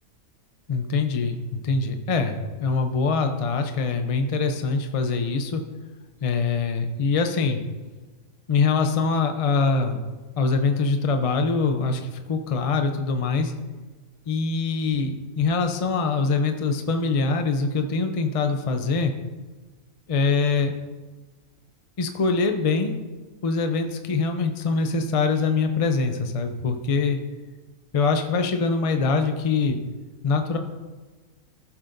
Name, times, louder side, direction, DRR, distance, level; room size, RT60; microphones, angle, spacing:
voice 1, 0.7-5.6 6.2-7.6 8.5-10.0 10.4-13.5 14.3-19.1 20.1-20.7 22.0-22.9 23.4-27.2 27.9-29.8 30.2-30.6, left 4 dB, 55° left, 6 dB, 0.4 m, -23 dB
15.5 x 7.2 x 2.6 m, 1.3 s
omnidirectional pair, 1.5 m